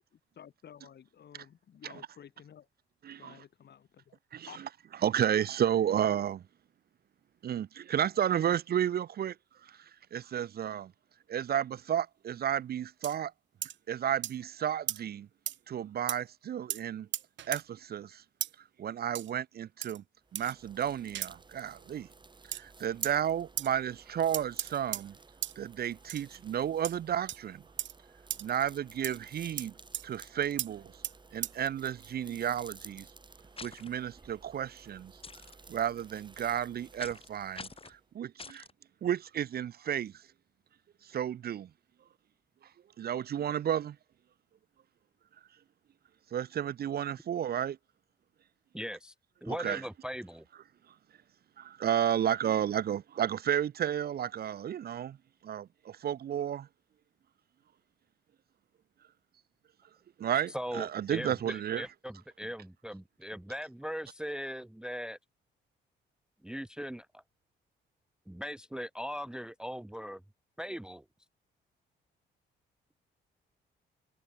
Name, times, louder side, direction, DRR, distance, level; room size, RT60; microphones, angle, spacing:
voice 1, 0.0-2.7 3.2-4.0 4.5-4.6, left 8 dB, 60° left, 5.1 m, -53 dB
voice 2, 5.0-6.4 7.4-9.4 9.6-10.9 11.3-13.3 13.9-15.3 15.7-17.1 17.5-18.2 18.8-20.0 20.3-22.1 22.5-25.1 25.6-27.6 28.4-29.7 30.0-30.9 31.3-33.1 33.6-35.1 35.7-38.7 39.0-40.1 41.0-41.7 43.0-44.0 46.3-47.8 49.5-49.8 51.6-55.2 55.4-56.7 60.2-61.9, right 9 dB, 50° right, 0.7 m, -32 dB
sound 1, 13.0-13.2 13.6-13.8 14.2-14.4 14.9-15.0 15.5-15.6 16.1-16.2 16.7-16.8 17.1-17.6 18.4-18.5 19.2-19.3 19.8-20.0 20.4-20.5 21.2-21.3 22.5-22.6 23.0-23.1 23.6-23.7 24.3-25.1 25.4-25.6 26.1-26.2 26.8-27.0 27.3-27.4 27.8-27.9 28.3-28.4 29.0-29.2 29.6-29.7 29.9-30.1 30.6-30.7 31.0-31.1 31.4-31.5, right 12 dB, 70° right, 1.0 m, -35 dB
sound 2, 20.2-38.1, right 3 dB, 25° right, 2.1 m, -55 dB
sound 3, 33.6-33.9 35.2-35.5 37.0-37.3 37.5-37.9 38.4-38.7, left 4 dB, 30° left, 3.5 m, -45 dB
voice 3, 48.7-49.1 49.4-50.4 60.5-65.2 66.4-67.2 68.3-70.2 70.6-71.0, equal, 5° right, 0.6 m, -39 dB
cardioid pair, 90°, 20 cm